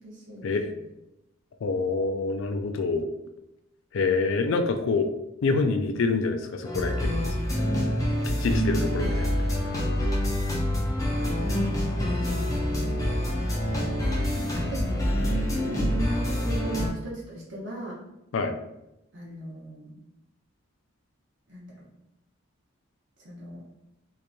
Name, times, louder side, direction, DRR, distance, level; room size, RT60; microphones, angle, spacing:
voice 1, 0.0-0.8 11.4-13.2 13.9-18.0 19.1-20.0 21.5-21.9 23.2-23.6, equal, 60° right, -6 dB, 0.8 m, -38 dB
voice 2, 1.6-3.1 3.9-5.1 5.4-7.4 8.2-9.3 18.3-18.5, left 4 dB, 70° left, 6 dB, 0.3 m, -26 dB
sound 1, 6.6-16.9, equal, 15° left, 0.5 m, -26 dB
2.9 x 2.5 x 2.2 m, 0.89 s
head